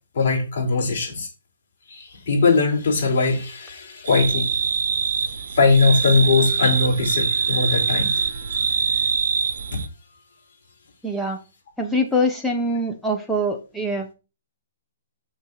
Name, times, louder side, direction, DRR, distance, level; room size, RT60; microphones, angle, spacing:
voice 1, 0.1-1.3 1.9-4.6 5.5-9.1 9.7-9.8, left 3 dB, 55° left, 4.6 m, -21 dB
sound 1, 4.0-9.9, right 6 dB, 75° right, 0.8 m, -24 dB
voice 2, 11.0-11.4 11.8-14.1, equal, 5° left, 1.3 m, -23 dB
6.5 x 5.9 x 5.9 m
hypercardioid pair, 155°, 0 cm